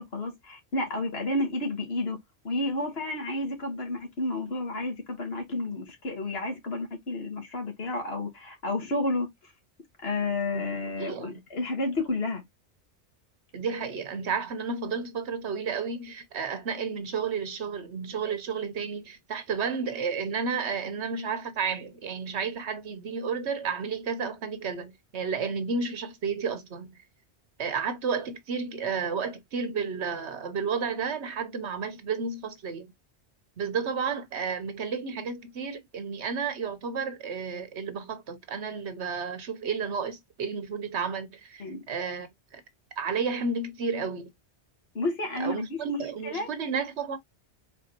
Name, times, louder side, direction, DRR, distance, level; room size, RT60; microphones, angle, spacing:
voice 1, 0.0-2.2 2.4-9.3 10.0-12.4 41.6-41.8 45.0-46.5, left 2 dB, 60° left, 1.9 m, -31 dB
voice 2, 11.0-11.4 13.5-27.0 27.6-32.9 33.6-42.6 43.0-44.3 45.4-47.2, right 5 dB, 75° right, 1.2 m, -32 dB
4.5 x 3.7 x 2.9 m
omnidirectional pair, 1.2 m